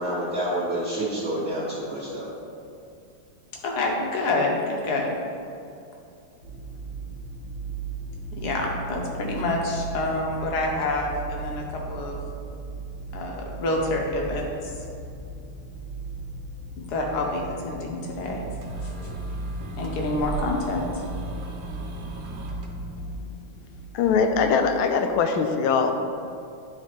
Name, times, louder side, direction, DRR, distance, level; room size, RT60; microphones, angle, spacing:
voice 1, 0.0-2.3, right 1 dB, 50° right, -10 dB, 1.4 m, -28 dB
voice 2, 3.6-5.1 8.3-12.2 13.1-14.7 16.8-18.4 18.8-18.9 19.8-21.0, left 2 dB, 60° left, 0 dB, 1.2 m, -27 dB
sound 1, 6.4-24.6, right 3 dB, 65° right, 1.6 m, -38 dB
sound 2, 18.3-23.1, right 1 dB, 90° right, 1.7 m, -34 dB
voice 3, 23.9-25.9, left 5 dB, 80° left, 6 dB, 1.4 m, -21 dB
10.5 x 3.7 x 3.0 m, 2.5 s
omnidirectional pair, 2.3 m